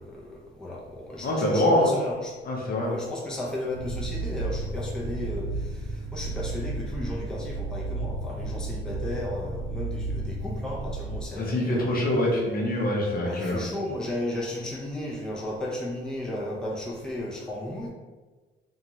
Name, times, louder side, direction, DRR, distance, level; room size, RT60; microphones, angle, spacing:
voice 1, 0.0-2.3 2.8-11.9 13.2-17.9, left 1 dB, 5° left, -4 dB, 0.6 m, -34 dB
voice 2, 1.2-1.9 2.5-2.9 11.4-13.7, left 1 dB, 50° left, -2 dB, 0.7 m, -24 dB
sound 1, 3.7-11.3, right 2 dB, 85° right, 0.6 m, -33 dB
2.6 x 2.3 x 3.0 m, 1.3 s
cardioid pair, 90°, 20 cm